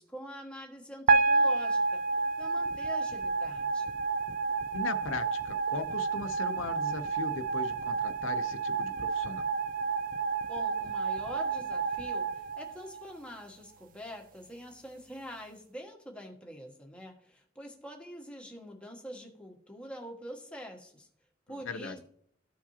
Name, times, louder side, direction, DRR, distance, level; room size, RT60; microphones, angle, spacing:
voice 1, 0.0-2.0 2.4-3.8 10.5-21.1 21.5-22.0, equal, 5° left, 0 dB, 1.4 m, -45 dB
sound 1, 1.1-13.4, right 4 dB, 45° right, 0.4 m, -30 dB
voice 2, 4.7-9.5 21.6-22.0, left 4 dB, 70° left, 10 dB, 0.6 m, -38 dB
14.0 x 4.8 x 2.8 m, 0.65 s
head